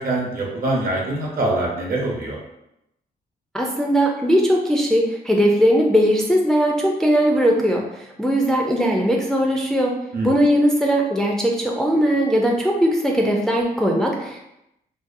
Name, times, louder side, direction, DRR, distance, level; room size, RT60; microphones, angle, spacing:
voice 1, 0.0-2.4 10.1-10.3, right 2 dB, 65° right, -2 dB, 0.8 m, -24 dB
voice 2, 3.5-9.9 10.2-14.4, equal, 5° left, -1 dB, 0.3 m, -19 dB
2.7 x 2.2 x 2.5 m, 0.84 s
cardioid pair, 100°, 16 cm